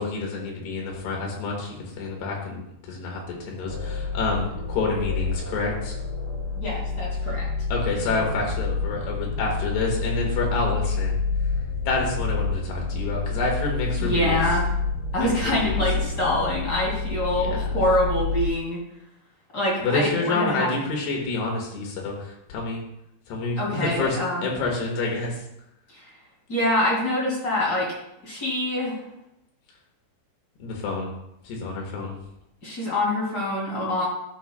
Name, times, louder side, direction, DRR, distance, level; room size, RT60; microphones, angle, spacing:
voice 1, 0.0-6.0 7.7-11.2 11.9-14.4 15.2-15.8 17.4-17.8 19.8-22.8 23.3-25.4 30.6-31.1 31.4-32.2, left 3 dB, 70° left, -1 dB, 3.7 m, -28 dB
sound 1, 3.7-18.5, left 4 dB, 50° left, 2.5 m, -28 dB
voice 2, 6.5-7.5 14.0-14.7 15.1-18.8 19.5-20.7 23.6-24.5 25.9-26.1 26.5-27.9 28.2-29.0 32.6-34.1, left 1 dB, 30° left, -5 dB, 2.2 m, -25 dB
11.5 x 7.1 x 2.3 m, 0.84 s
omnidirectional pair, 5.1 m